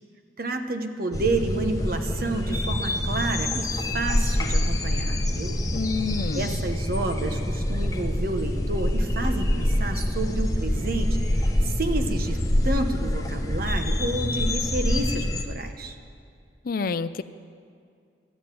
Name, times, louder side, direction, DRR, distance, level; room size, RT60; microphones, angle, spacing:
voice 1, 0.4-5.6 6.3-15.9, right 2 dB, 55° right, 6 dB, 1.0 m, -30 dB
sound 1, 1.1-15.4, left 1 dB, 20° left, 0.9 m, -26 dB
voice 2, 5.7-6.6 16.6-17.2, left 4 dB, 55° left, 13 dB, 0.4 m, -28 dB
13.5 x 8.7 x 9.0 m, 2.3 s
head